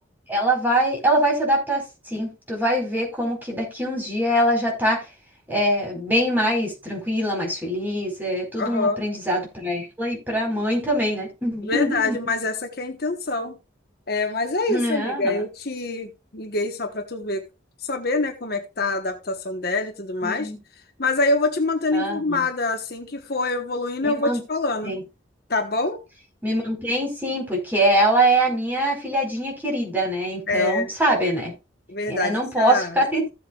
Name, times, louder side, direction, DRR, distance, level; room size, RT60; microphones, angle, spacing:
voice 1, 0.3-5.1 5.5-12.2 14.7-15.4 20.2-20.6 21.9-22.4 24.0-24.4 24.8-25.0 26.4-31.5 32.1-33.3, right 1 dB, 10° right, 4.6 m, -23 dB
voice 2, 8.6-9.0 11.6-13.6 14.1-17.4 17.8-20.5 21.0-24.9 25.5-26.0 30.5-30.9 31.9-33.0, left 3 dB, 50° left, 1.2 m, -25 dB
15.5 x 7.7 x 2.4 m
head